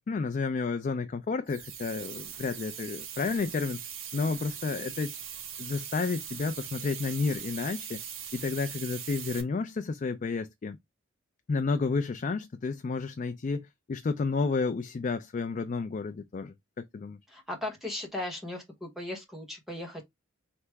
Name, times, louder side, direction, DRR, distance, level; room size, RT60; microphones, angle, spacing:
voice 1, 0.1-3.8 4.1-5.2 5.6-8.0 8.3-10.8 11.5-17.2, left 4 dB, 40° left, 0.3 m, -31 dB
sound 1, 1.5-9.4, right 8 dB, 70° right, 0.9 m, -41 dB
voice 2, 17.3-20.0, left 1 dB, ahead, 1.1 m, -37 dB
3.4 x 2.9 x 4.6 m
head